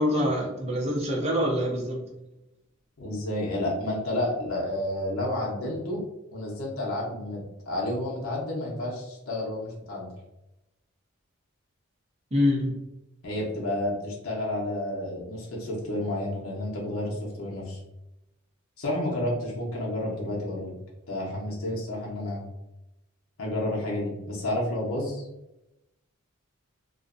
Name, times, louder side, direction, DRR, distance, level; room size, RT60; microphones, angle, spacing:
voice 1, 0.0-2.1 12.3-12.8, left 1 dB, 30° right, -1 dB, 0.5 m, -25 dB
voice 2, 3.0-6.0 6.3-10.1 13.2-17.8 18.8-20.7 21.1-22.4 23.4-25.3, left 1 dB, 85° left, -4 dB, 0.6 m, -30 dB
2.4 x 2.1 x 2.4 m, 0.93 s
head